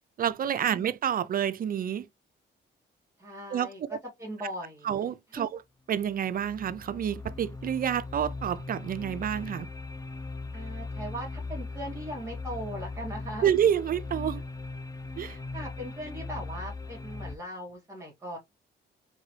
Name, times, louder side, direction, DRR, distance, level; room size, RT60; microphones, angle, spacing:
voice 1, 0.2-2.1 3.5-4.0 4.8-5.5 5.9-9.7 13.4-14.4 15.2-15.4, right 9 dB, 45° right, 0.4 m, -28 dB
voice 2, 3.2-3.8 4.2-4.9 5.4-5.5 10.5-13.5 15.3-18.4, equal, 15° right, 2.1 m, -39 dB
sound 1, 6.0-17.4, left 3 dB, 20° left, 0.7 m, -39 dB
3.9 x 3.6 x 3.1 m
cardioid pair, 90°, 20 cm